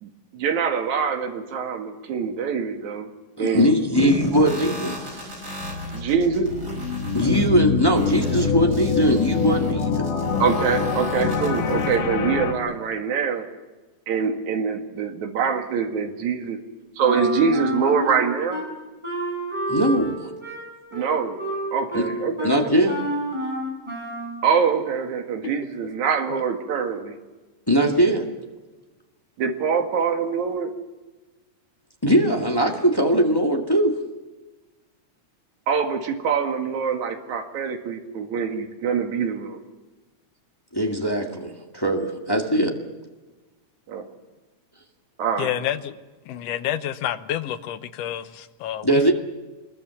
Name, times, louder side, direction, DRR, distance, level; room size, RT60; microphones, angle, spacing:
voice 1, 0.0-3.1 3.4-4.1 5.9-6.5 10.4-13.5 14.1-16.6 17.0-18.6 20.9-21.4 21.7-22.9 24.4-27.2 29.4-30.7 35.7-39.6 43.9-44.1 45.2-45.5, right 6 dB, 70° right, 3.2 m, -24 dB
voice 2, 3.4-5.3 7.1-10.0 19.7-20.3 21.9-22.1 22.4-23.0 27.7-28.3 32.0-34.0 40.7-42.8 48.8-49.1, equal, 10° left, 1.3 m, -21 dB
sound 1, 4.0-12.0, left 2 dB, 40° right, 6.0 m, -34 dB
sound 2, 5.6-12.5, left 6 dB, 85° left, 3.6 m, -25 dB
Wind instrument woodwind instrument, 17.0-18.7 19.0-24.4, right 1 dB, 10° right, 7.0 m, -30 dB
voice 3, 45.4-46.0 46.3-49.1, left 11 dB, 65° left, 1.8 m, -29 dB
25.5 x 21.5 x 7.1 m
omnidirectional pair, 3.6 m